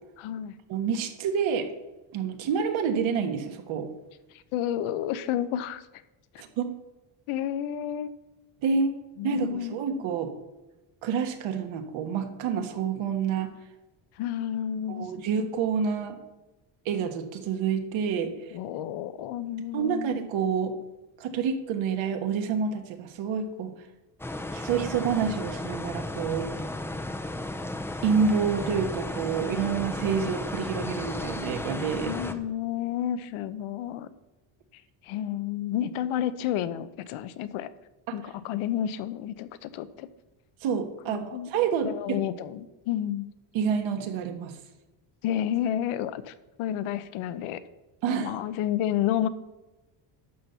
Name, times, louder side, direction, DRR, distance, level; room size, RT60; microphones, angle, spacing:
voice 1, 0.2-0.6 4.5-5.8 7.3-8.1 9.2-9.8 14.2-15.1 18.5-20.1 32.1-34.1 35.0-37.7 38.1-40.1 41.1-41.5 41.8-43.3 45.2-47.6 48.1-49.3, left 11 dB, 75° left, 14 dB, 0.9 m, -30 dB
voice 2, 0.7-1.7 2.1-3.9 6.4-6.7 8.6-8.9 9.2-10.3 11.0-13.5 14.9-16.2 16.8-18.3 19.7-20.7 21.2-23.7 24.5-26.5 28.0-32.1 38.1-38.2 40.6-42.2 43.5-44.5 48.0-48.4, right 6 dB, 70° right, 6 dB, 1.5 m, -28 dB
sound 1, 24.2-32.3, left 1 dB, 5° left, 0.6 m, -34 dB
12.0 x 4.4 x 6.8 m, 1.1 s
cardioid pair, 125°, 49 cm